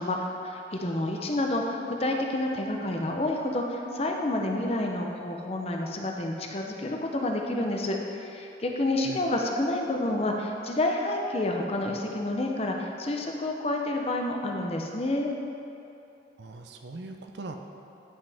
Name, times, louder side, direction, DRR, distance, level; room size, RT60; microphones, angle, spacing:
voice 1, 0.0-15.3, left 1 dB, 35° left, 1 dB, 0.6 m, -29 dB
voice 2, 16.4-17.6, right 3 dB, 65° right, 5 dB, 0.5 m, -40 dB
9.7 x 5.8 x 3.4 m, 2.8 s
head